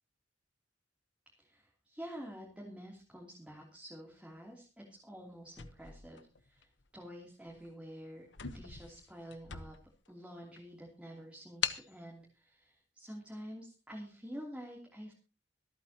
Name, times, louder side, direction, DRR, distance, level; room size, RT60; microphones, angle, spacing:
voice 1, 1.4-8.3 8.5-9.8 10.1-15.1, equal, 5° right, -2 dB, 3.1 m, -48 dB
sound 1, 5.5-6.8 7.5-7.7 8.0-8.1 8.3-10.1 10.6-10.7 11.6-11.9, left 9 dB, 85° left, 1.1 m, -41 dB
26.0 x 9.0 x 2.9 m, 0.33 s
head